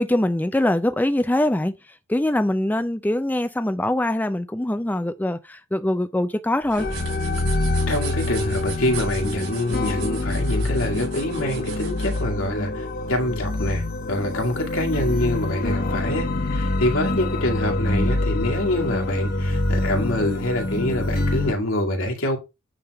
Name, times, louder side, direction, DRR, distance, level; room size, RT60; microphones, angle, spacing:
voice 1, 0.0-1.7 2.1-6.9, left 1 dB, 10° left, 0.4 m, -23 dB
sound 1, 6.6-12.2, right 5 dB, 65° right, 5.1 m, -38 dB
sound 2, 6.8-21.5, left 2 dB, 45° left, 1.1 m, -26 dB
voice 2, 7.9-22.4, left 1 dB, 70° left, 2.1 m, -25 dB
8.7 x 3.6 x 4.7 m
head